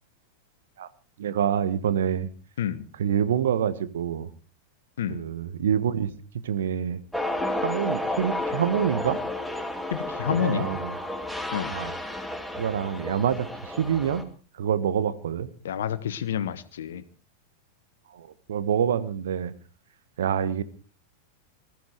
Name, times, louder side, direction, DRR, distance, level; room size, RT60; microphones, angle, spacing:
voice 1, 1.2-2.3 2.9-4.3 5.1-6.1 6.4-7.0 7.6-9.2 10.3-10.9 11.7-11.9 12.6-14.2 14.5-15.5 18.1-19.5 20.2-20.6, right 8 dB, 60° right, 14 dB, 1.5 m, -26 dB
sound 1, 7.1-14.2, left 1 dB, ahead, 2.4 m, -32 dB
voice 2, 9.9-10.7 11.5-11.7 15.6-17.0, left 9 dB, 60° left, 15 dB, 1.3 m, -29 dB
20.5 x 14.5 x 4.8 m, 0.39 s
figure-of-eight pair, 90°, 0 cm